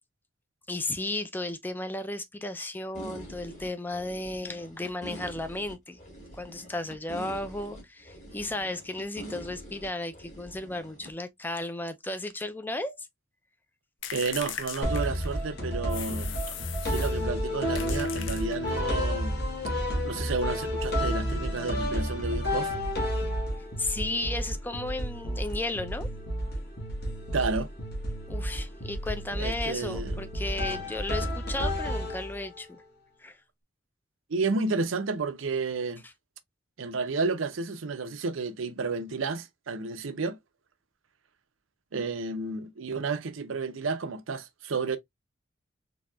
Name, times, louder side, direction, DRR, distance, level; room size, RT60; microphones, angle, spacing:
voice 1, 0.7-6.0 6.3-13.1 23.8-26.1 28.3-32.8 33.2-33.4 36.0-36.1, left 2 dB, 10° left, 0.4 m, -34 dB
sound 1, 2.9-11.1, right 1 dB, 40° left, 1.7 m, -45 dB
sound 2, 14.0-15.5 15.9-17.2 17.7-18.9, left 9 dB, 70° left, 0.6 m, -39 dB
voice 2, 14.1-16.4 16.8-19.4 20.0-22.7 27.3-27.7 29.4-30.2 34.3-36.0 36.8-40.4 41.9-45.0, right 4 dB, 80° right, 0.6 m, -31 dB
sound 3, 14.8-32.6, equal, 55° left, 1.4 m, -31 dB
4.0 x 2.8 x 2.3 m
head